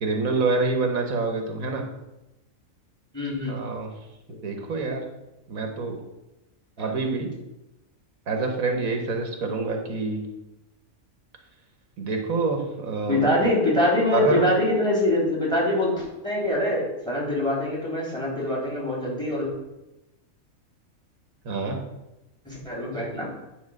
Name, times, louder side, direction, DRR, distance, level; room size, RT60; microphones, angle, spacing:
voice 1, 0.0-1.8 3.5-3.9 4.4-5.0 5.5-6.0 6.8-7.3 8.3-10.2 12.0-13.3 14.1-14.4 21.4-21.8, right 3 dB, 75° right, 3 dB, 1.5 m, -26 dB
voice 2, 3.1-3.7 6.8-6.9 13.1-19.5 22.4-23.3, left 1 dB, 5° left, -4 dB, 3.4 m, -24 dB
9.7 x 4.0 x 6.4 m, 0.95 s
omnidirectional pair, 1.5 m